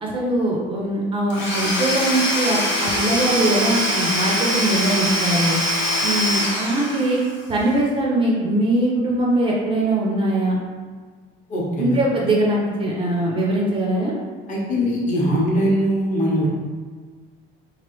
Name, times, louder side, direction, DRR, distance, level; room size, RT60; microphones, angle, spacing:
voice 1, 0.0-5.6 6.0-7.2 7.5-10.6 11.8-14.1, right 1 dB, 25° right, -3 dB, 0.4 m, -21 dB
Domestic sounds home sounds / Tools, 1.3-7.4, left 1 dB, 70° left, 0.8 m, -23 dB
voice 2, 11.5-12.0 14.5-16.5, equal, 35° left, -4 dB, 0.7 m, -21 dB
3.0 x 2.4 x 3.0 m, 1.5 s
cardioid pair, 170°, 21 cm